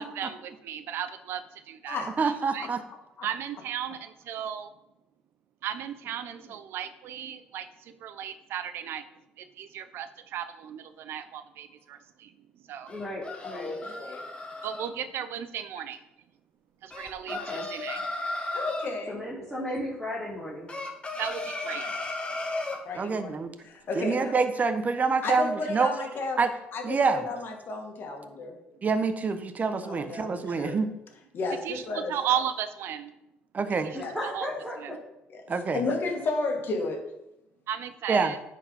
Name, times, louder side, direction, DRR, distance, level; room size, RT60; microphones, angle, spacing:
voice 1, 0.0-2.7 3.2-4.7 5.6-9.1 9.4-12.3 12.7-12.9 14.6-16.0 16.8-18.0 21.2-21.9 31.6-33.1 33.8-34.0 34.3-34.4 37.7-38.4, right 9 dB, 70° right, 11 dB, 0.8 m, -35 dB
voice 2, 2.2-2.8 22.9-23.5 24.0-25.9 26.4-26.5 26.8-27.2 28.8-30.9 33.5-33.9 35.5-35.8 38.1-38.3, right 4 dB, 40° right, 9 dB, 1.0 m, -26 dB
voice 3, 6.0-6.6 12.9-13.9 17.3-17.7 19.1-20.8 33.6-35.0 35.9-36.0, left 1 dB, 5° left, -7 dB, 3.1 m, -36 dB
sound 1, 12.9-14.9 16.9-18.9 20.7-22.8, left 2 dB, 25° left, 1.9 m, -35 dB
voice 4, 13.4-14.3 18.5-19.2 22.8-24.3 25.2-26.4 26.7-28.6 29.8-30.8 31.3-32.2 34.0-34.1 35.5-37.1, left 3 dB, 60° left, 3 dB, 2.0 m, -33 dB
9.8 x 4.7 x 5.5 m, 0.88 s
supercardioid pair, 65°, 4 cm